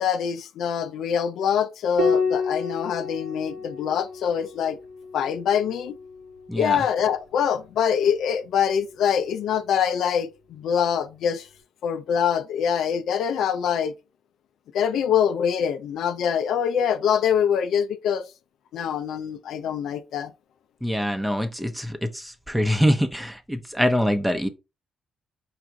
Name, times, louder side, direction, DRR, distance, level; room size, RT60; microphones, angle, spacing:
voice 1, 0.0-4.8 5.1-6.0 6.5-11.5 11.8-13.9 14.7-18.2 18.7-20.3, left 8 dB, 75° left, 0.5 m, -24 dB
Piano, 2.0-6.8 8.5-9.3, left 4 dB, 85° right, 1.8 m, -30 dB
voice 2, 6.5-6.8 20.8-24.5, equal, 5° right, 0.8 m, -24 dB
4.8 x 2.5 x 4.5 m
cardioid pair, 80°, 0 cm